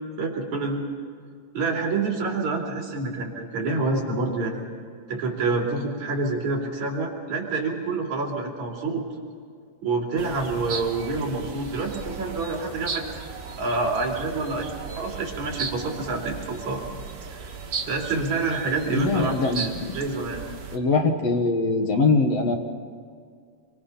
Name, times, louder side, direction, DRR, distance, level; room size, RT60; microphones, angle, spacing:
voice 1, 0.2-0.8 1.5-4.6 5.1-9.0 9.8-13.1 13.6-16.8 17.3-17.5 17.9-20.4, right 3 dB, 45° right, -1 dB, 3.9 m, -27 dB
sound 1, 10.2-20.8, right 5 dB, 70° right, 0.8 m, -36 dB
voice 2, 18.9-19.9 20.7-22.5, left 3 dB, 55° left, 4 dB, 1.9 m, -22 dB
27.0 x 24.0 x 5.6 m, 2.2 s
omnidirectional pair, 4.8 m